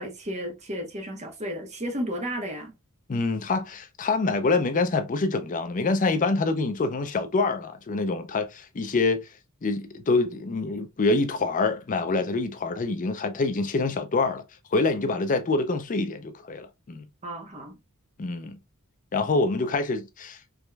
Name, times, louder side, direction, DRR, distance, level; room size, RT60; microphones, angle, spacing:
voice 1, 0.0-2.7 17.2-17.7, equal, 30° right, 1.0 m, -33 dB
voice 2, 3.1-9.3 9.6-14.4 14.7-17.0 18.2-18.6 19.1-20.4, left 3 dB, 35° left, 0.5 m, -26 dB
4.7 x 3.0 x 2.2 m
head